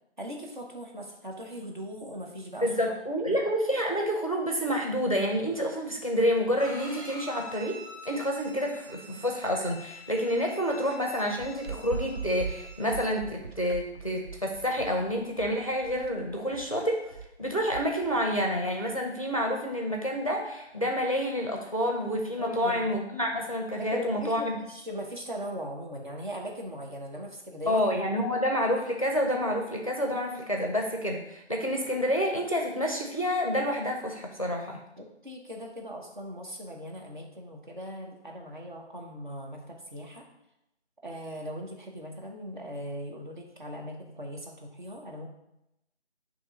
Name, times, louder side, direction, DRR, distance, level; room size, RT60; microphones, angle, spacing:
voice 1, 0.2-2.7 3.3-3.4 22.4-23.0 23.8-27.8 28.1-28.3 35.0-40.3 41.0-45.3, equal, 45° right, 0 dB, 1.2 m, -39 dB
voice 2, 2.6-17.1 17.4-24.6 27.7-34.8, equal, 30° left, 1 dB, 0.6 m, -28 dB
Bowed string instrument, 6.6-13.1, left 1 dB, 10° right, 1.7 m, -46 dB
Running on a carpet over wood floor, 11.4-18.2, right 5 dB, 65° right, 0.7 m, -40 dB
6.6 x 3.1 x 5.0 m, 0.84 s
figure-of-eight pair, 170°, 34 cm